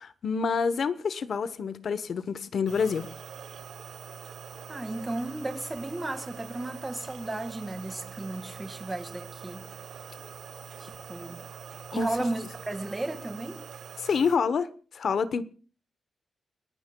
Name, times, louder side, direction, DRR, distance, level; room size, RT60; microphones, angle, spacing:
voice 1, 0.0-3.1 11.9-12.1 14.0-15.4, left 5 dB, 65° left, 0.8 m, -28 dB
sound 1, 2.7-14.4, right 7 dB, 75° right, 0.7 m, -44 dB
voice 2, 4.7-9.7 10.8-11.4 11.9-13.6, right 2 dB, 20° right, 1.8 m, -34 dB
29.5 x 15.0 x 2.2 m
cardioid pair, 95°, 0 cm